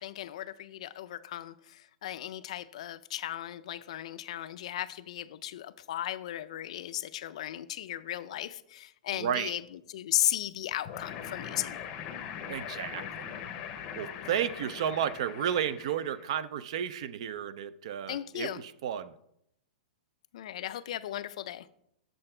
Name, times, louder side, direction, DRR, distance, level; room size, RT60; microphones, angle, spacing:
voice 1, 0.0-9.6 9.9-11.8 18.1-18.6 20.3-21.7, left 12 dB, 45° left, 0.4 m, -36 dB
voice 2, 9.1-9.6 12.5-13.3 13.7-19.2, right 9 dB, 45° right, 0.4 m, -33 dB
sound 1, 10.8-16.3, left 8 dB, 20° left, 0.7 m, -41 dB
7.8 x 6.8 x 4.4 m
supercardioid pair, 175°, 5 cm